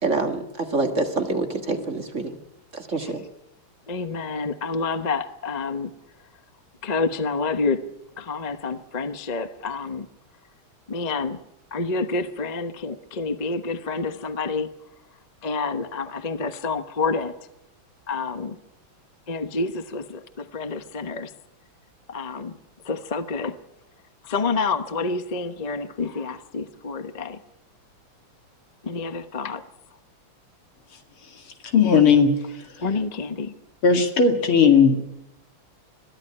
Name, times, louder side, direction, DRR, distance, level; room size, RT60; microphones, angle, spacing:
voice 1, 0.0-2.3 2.7-3.2, right 3 dB, 35° right, 5 dB, 2.0 m, -26 dB
voice 2, 3.9-5.9 6.8-7.8 8.2-10.1 10.9-11.4 11.7-14.7 15.4-17.3 18.1-18.6 19.3-21.3 22.1-22.6 22.8-23.6 24.2-27.4 28.8-29.6 32.8-33.5, left 4 dB, 35° left, 10 dB, 0.7 m, -28 dB
voice 3, 31.7-32.3 33.8-35.0, left 6 dB, 85° left, 5 dB, 3.2 m, -16 dB
22.0 x 14.5 x 9.7 m, 0.86 s
omnidirectional pair, 2.3 m